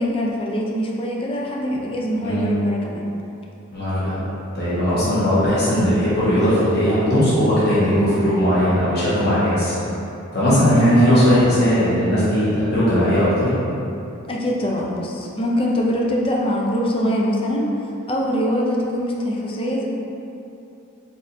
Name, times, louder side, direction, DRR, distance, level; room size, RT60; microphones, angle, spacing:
voice 1, 0.0-3.1 14.3-17.7 18.1-19.9, equal, 25° left, -2 dB, 0.5 m, -23 dB
voice 2, 3.7-4.2 4.5-9.7 10.3-13.6, equal, 50° left, -11 dB, 1.1 m, -18 dB
4.2 x 3.5 x 2.6 m, 2.8 s
head